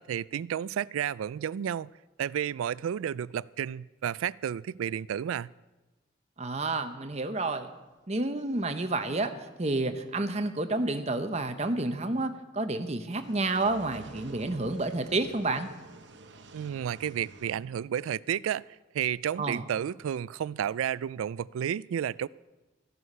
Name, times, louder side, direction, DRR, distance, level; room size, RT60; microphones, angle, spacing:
voice 1, 0.0-1.9 2.2-5.5 16.5-18.6 18.9-22.3, right 9 dB, 90° right, 0.3 m, -31 dB
voice 2, 6.4-7.7 8.1-9.3 9.6-15.7 19.4-19.6, right 2 dB, 35° right, 0.9 m, -30 dB
sound 1, 13.1-17.6, right 3 dB, 60° right, 0.9 m, -48 dB
14.5 x 11.0 x 5.5 m
head